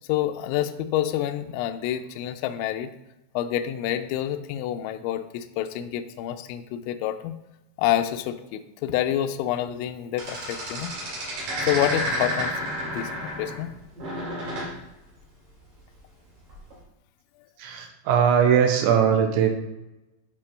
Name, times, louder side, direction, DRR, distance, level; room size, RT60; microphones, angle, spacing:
voice 1, 0.1-2.9 3.4-7.4 7.8-10.9 11.7-13.7, left 11 dB, 90° left, 7 dB, 2.6 m, -28 dB
sound 1, 10.2-13.7 14.0-14.7 16.5-16.7, equal, 45° right, 3.6 m, -30 dB
voice 2, 17.6-19.5, right 8 dB, 80° right, 4 dB, 3.0 m, -20 dB
10.5 x 5.4 x 3.2 m, 0.95 s
omnidirectional pair, 5.8 m